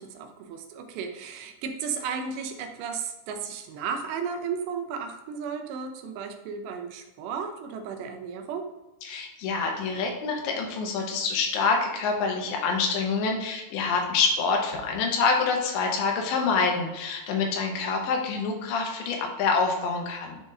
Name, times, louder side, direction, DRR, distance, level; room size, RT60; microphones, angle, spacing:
voice 1, 0.0-8.7, right 6 dB, 85° right, 5 dB, 2.8 m, -34 dB
voice 2, 9.0-20.4, left 4 dB, 90° left, 2 dB, 3.3 m, -26 dB
10.5 x 4.0 x 2.5 m, 1.1 s
omnidirectional pair, 5.0 m